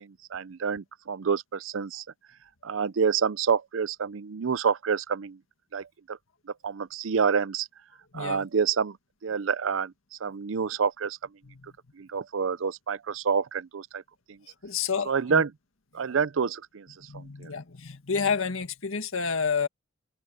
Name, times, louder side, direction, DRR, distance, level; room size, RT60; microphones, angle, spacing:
voice 1, 0.0-2.0 2.6-5.4 5.7-6.2 6.5-7.7 8.1-9.0 9.2-11.2 11.9-14.0 14.3-14.4 15.1-15.5 15.9-17.5, right 6 dB, 70° right, 0.5 m, -28 dB
voice 2, 8.1-8.5 11.4-11.6 14.5-15.4 17.1-19.7, left 5 dB, 80° left, 1.8 m, -30 dB
open air
head